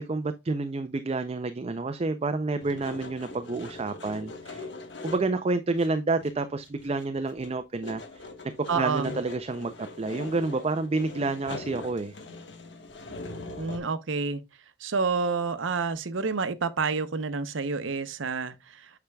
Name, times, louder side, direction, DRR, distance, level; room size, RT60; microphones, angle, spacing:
voice 1, 0.0-4.7 5.0-12.1, right 3 dB, 35° right, 0.4 m, -29 dB
sound 1, 2.6-5.4 5.8-5.9 6.2-7.0 7.3-13.8, left 3 dB, 65° left, 1.3 m, -42 dB
voice 2, 8.7-9.2 13.6-14.4 14.8-18.9, right 4 dB, 85° right, 0.7 m, -29 dB
8.3 x 5.8 x 2.3 m
head